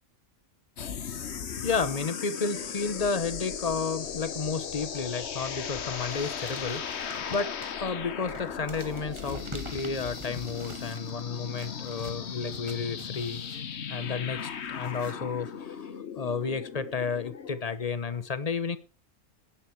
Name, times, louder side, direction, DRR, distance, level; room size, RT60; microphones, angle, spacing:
sound 1, 0.8-17.6, left 7 dB, 60° left, 1.3 m, -37 dB
voice 1, 1.1-18.8, left 5 dB, 35° left, 1.0 m, -32 dB
sound 2, 5.9-15.1, right 3 dB, 25° right, 1.4 m, -48 dB
18.0 x 10.0 x 4.6 m
omnidirectional pair, 1.3 m